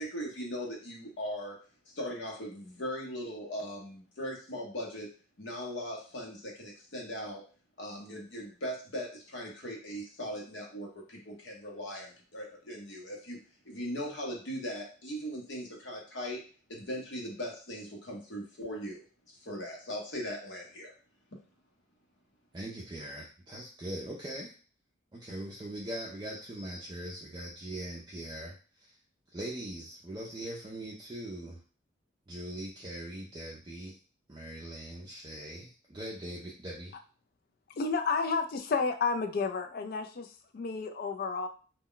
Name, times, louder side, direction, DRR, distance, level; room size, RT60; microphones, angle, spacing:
voice 1, 0.0-1.6 1.9-5.1 5.4-7.4 7.8-16.4 16.7-20.9, equal, 70° left, -1 dB, 0.8 m, -39 dB
voice 2, 22.5-24.6 25.1-29.0 29.3-31.6 32.3-34.0 34.3-36.9, right 1 dB, 25° right, -3 dB, 0.4 m, -41 dB
voice 3, 37.8-41.5, left 4 dB, 50° left, 6 dB, 0.3 m, -31 dB
2.2 x 2.1 x 3.7 m, 0.39 s
head